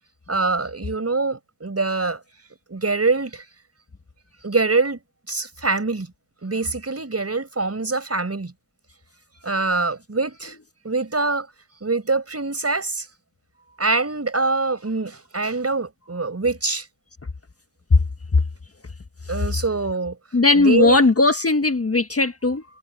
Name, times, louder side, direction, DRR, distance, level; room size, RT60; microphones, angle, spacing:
voice 1, 0.3-2.2 2.7-3.5 4.4-5.0 5.3-6.1 6.4-8.5 9.4-10.6 10.8-11.5 11.8-13.1 13.8-16.9 19.3-20.2 20.5-21.0, right 3 dB, 30° right, 5.4 m, -24 dB
voice 2, 20.3-22.6, left 3 dB, 30° left, 1.6 m, -18 dB
cardioid pair, 55°, 48 cm